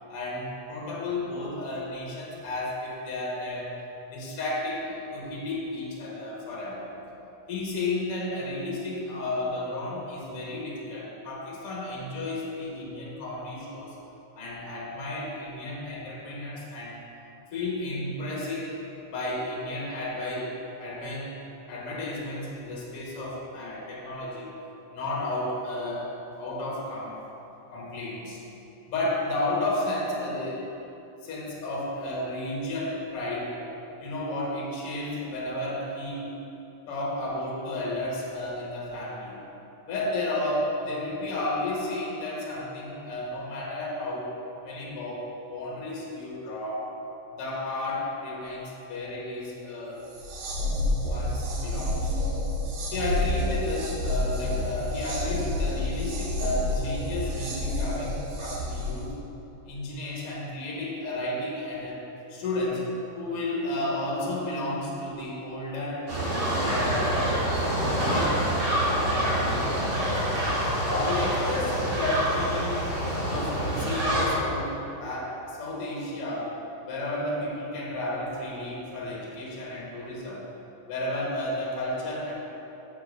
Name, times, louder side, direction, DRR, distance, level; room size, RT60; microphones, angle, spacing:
voice 1, 0.1-3.8 4.1-6.9 7.5-14.0 14.4-17.0 17.5-18.8 19.0-20.5 20.8-21.3 21.7-24.6 24.9-27.2 27.7-28.4 28.8-30.7 31.2-33.6 34.0-36.3 36.9-39.4 39.9-44.4 44.6-46.9 47.4-50.0 51.0-52.3 52.9-59.1 59.7-66.1 66.6-68.4 68.7-70.4 70.8-72.9 73.2-74.7 75.0-76.6 76.9-80.4 80.9-82.3, left 1 dB, 50° left, -4 dB, 2.1 m, -32 dB
sound 1, 50.0-59.1, left 1 dB, 65° right, 2.5 m, -29 dB
sound 2, 66.1-74.3, right 1 dB, 50° right, 2.7 m, -26 dB
6.7 x 5.0 x 6.5 m, 3.0 s
omnidirectional pair, 3.7 m